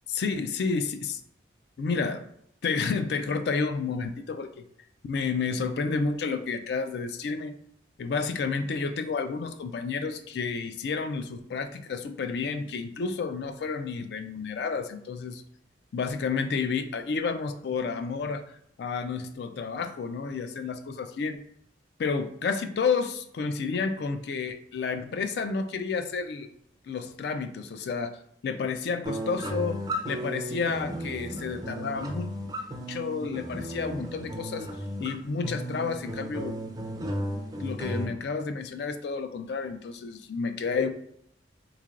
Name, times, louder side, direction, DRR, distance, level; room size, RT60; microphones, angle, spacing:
voice 1, 0.1-1.2 1.8-2.2 2.6-4.6 5.0-7.6 8.0-15.4 15.9-21.4 22.0-26.5 26.9-28.1 28.4-32.3 32.9-34.7 35.0-36.6 37.6-40.9, left 5 dB, 60° left, 10 dB, 0.3 m, -30 dB
sound 1, 29.0-38.0, equal, 20° right, 0.4 m, -35 dB
3.7 x 3.2 x 2.4 m, 0.70 s
head